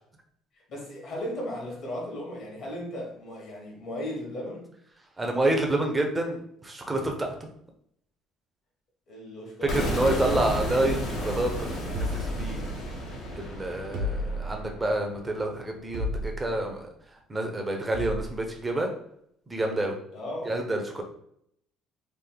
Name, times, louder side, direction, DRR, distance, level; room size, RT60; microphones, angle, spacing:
voice 1, 0.7-4.7 9.1-10.4 20.1-20.6, left 1 dB, 50° left, -2 dB, 1.4 m, -36 dB
voice 2, 5.2-7.3 9.7-12.6 13.4-16.9 17.3-18.9 19.5-20.0 20.4-21.0, right 1 dB, 10° right, 2 dB, 0.6 m, -28 dB
sound 1, 9.7-15.5, equal, 65° left, 1.2 m, -33 dB
sound 2, 11.9-13.0 13.9-14.8 15.9-16.6 17.9-18.4, left 1 dB, 90° right, 1.1 m, -32 dB
3.4 x 2.5 x 3.8 m, 0.71 s
cardioid pair, 150°, 0 cm